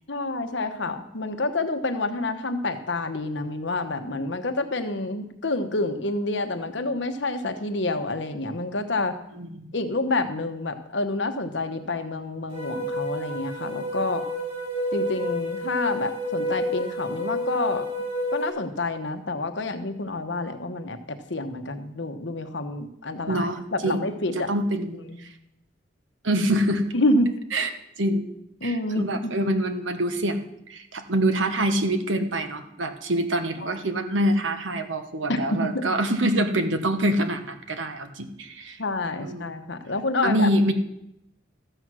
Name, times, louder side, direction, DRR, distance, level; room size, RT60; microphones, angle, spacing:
voice 1, 0.1-9.2 9.7-14.3 14.9-17.9 18.3-24.5 25.1-25.2 26.9-27.3 28.6-29.3 33.6-33.8 35.3-35.8 38.8-40.5, left 2 dB, 70° left, 7 dB, 1.1 m, -28 dB
voice 2, 9.4-9.7 23.3-25.3 26.2-26.8 27.5-27.7 28.0-28.3 28.6-30.4 30.7-38.8 39.2-39.5 40.2-40.7, right 1 dB, 80° right, 8 dB, 1.3 m, -25 dB
sound 1, 12.5-18.5, left 1 dB, 30° right, 3.3 m, -29 dB
13.5 x 7.9 x 6.2 m, 0.81 s
head